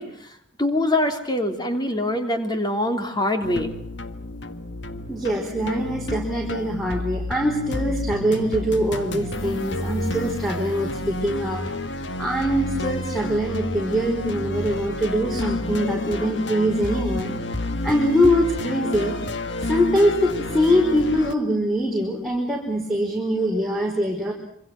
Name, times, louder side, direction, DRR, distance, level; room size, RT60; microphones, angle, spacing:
voice 1, 0.0-3.7, left 1 dB, 20° left, 5 dB, 3.3 m, -24 dB
sound 1, 3.4-21.3, left 1 dB, 65° left, 1.8 m, -30 dB
voice 2, 5.1-17.3 17.8-19.2 19.6-24.3, equal, ahead, -2 dB, 4.7 m, -23 dB
27.0 x 26.0 x 6.0 m, 0.74 s
head